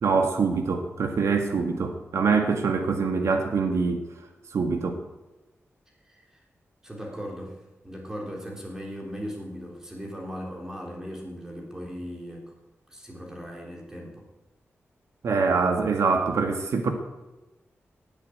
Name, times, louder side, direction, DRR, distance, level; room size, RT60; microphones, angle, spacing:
voice 1, 0.0-4.0 4.5-5.0 15.2-16.9, right 4 dB, 80° right, 5 dB, 2.0 m, -24 dB
voice 2, 6.1-6.4 6.8-7.6 7.8-12.5 12.9-14.2, equal, 10° right, 0 dB, 3.7 m, -38 dB
18.0 x 8.6 x 8.6 m, 1.1 s
wide cardioid pair, 170°, 5 cm